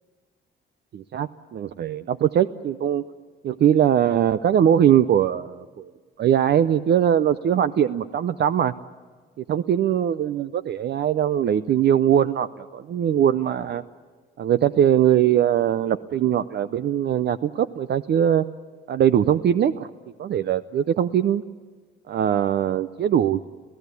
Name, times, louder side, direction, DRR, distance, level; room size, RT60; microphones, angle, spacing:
voice 1, 0.9-3.0 3.4-5.9 6.2-8.7 9.5-13.8 14.4-18.4 18.9-19.9 20.2-21.4 22.1-23.5, right 10 dB, 60° right, 13 dB, 0.6 m, -21 dB
28.0 x 16.0 x 8.3 m, 1.5 s
cardioid pair, 90°, 20 cm